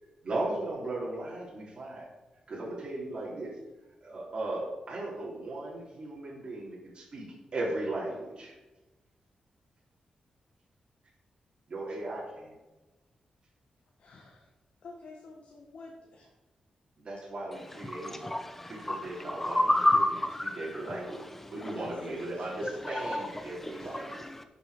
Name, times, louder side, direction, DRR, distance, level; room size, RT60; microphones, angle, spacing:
voice 1, 0.2-2.1 2.5-3.6 4.0-7.3 7.5-8.5 11.7-12.6 17.0-18.3 18.7-20.0 20.5-21.2 21.5-24.2, right 2 dB, 45° right, 3.3 m, -37 dB
voice 2, 14.0-14.5 14.8-16.3 21.7-21.9 22.3-22.4, left 3 dB, 65° left, 1.6 m, -49 dB
voice 3, 17.8-21.3 21.6-21.8 22.6-24.4, left 1 dB, 10° left, 1.0 m, -31 dB
11.5 x 7.2 x 5.1 m
wide cardioid pair, 145°, 2 cm